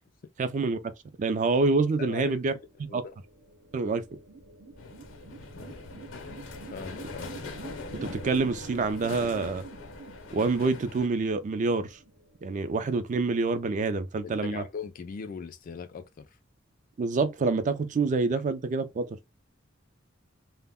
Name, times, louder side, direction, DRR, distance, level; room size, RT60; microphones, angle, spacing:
voice 1, 0.4-0.8 1.2-2.5 2.9-3.0 3.7-4.0 8.0-9.6 10.3-12.0 12.4-14.6 17.0-19.1, right 3 dB, 40° right, 0.3 m, -26 dB
voice 2, 2.0-2.4 2.9-3.2 6.6-7.4 13.9-16.4 18.3-18.4, left 5 dB, 45° left, 0.3 m, -40 dB
sound 1, 2.8-12.6, right 2 dB, 70° right, 0.8 m, -46 dB
sound 2, 4.8-11.1, left 4 dB, 75° left, 0.7 m, -43 dB
2.1 x 2.0 x 3.5 m
head